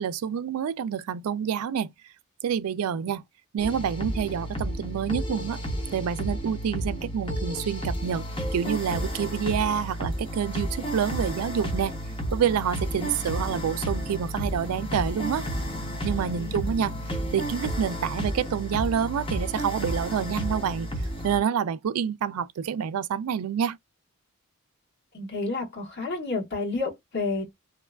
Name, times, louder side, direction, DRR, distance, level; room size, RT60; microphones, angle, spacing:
voice 1, 0.0-1.9 2.4-3.2 3.5-5.6 5.9-8.2 8.5-11.9 12.3-15.4 16.0-16.9 17.3-20.9 21.2-23.8, right 8 dB, 75° right, 0.3 m, -27 dB
sound 1, 3.6-21.4, equal, 25° left, 0.7 m, -32 dB
sound 2, 11.1-17.6, left 2 dB, 75° left, 0.5 m, -43 dB
voice 2, 25.1-27.5, left 3 dB, 50° left, 1.3 m, -30 dB
2.9 x 2.3 x 2.2 m
head